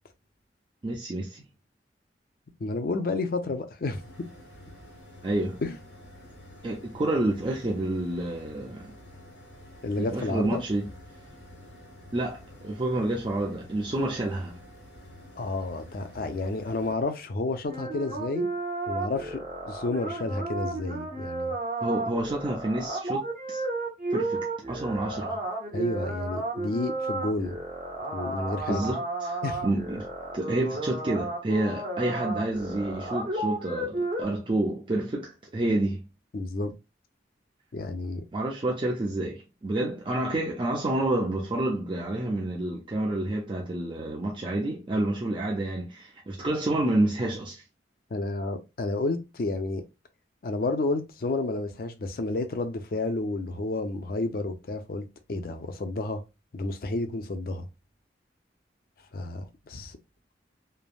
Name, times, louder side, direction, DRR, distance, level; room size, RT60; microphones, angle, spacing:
voice 1, 0.8-1.5 5.2-5.6 6.6-8.9 10.0-10.9 12.1-14.6 21.8-23.6 24.1-25.4 28.7-30.0 30.3-36.1 38.3-47.6, right 1 dB, 30° right, 0.4 m, -29 dB
voice 2, 2.6-4.0 5.6-5.8 9.8-10.6 15.4-18.5 18.9-19.4 19.7-21.6 25.7-27.6 28.1-28.9 29.4-29.7 36.3-36.7 37.7-38.2 48.1-49.8 50.4-55.0 55.3-56.2 56.5-57.7 59.1-60.0, left 2 dB, 50° left, 0.4 m, -30 dB
sound 1, 3.9-16.9, left 1 dB, 85° left, 1.0 m, -49 dB
sound 2, 17.7-34.2, right 2 dB, 45° right, 0.8 m, -33 dB
3.2 x 2.1 x 2.3 m
head